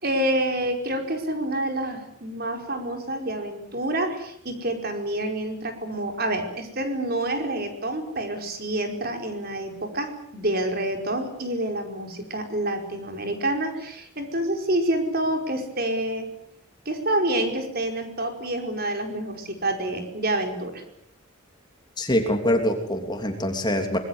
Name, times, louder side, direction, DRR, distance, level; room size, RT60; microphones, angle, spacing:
voice 1, 0.0-16.3 16.8-20.8, right 1 dB, 45° right, 4 dB, 5.0 m, -28 dB
voice 2, 22.0-24.0, left 1 dB, 20° left, 4 dB, 3.2 m, -24 dB
25.5 x 21.0 x 8.2 m, 0.70 s
head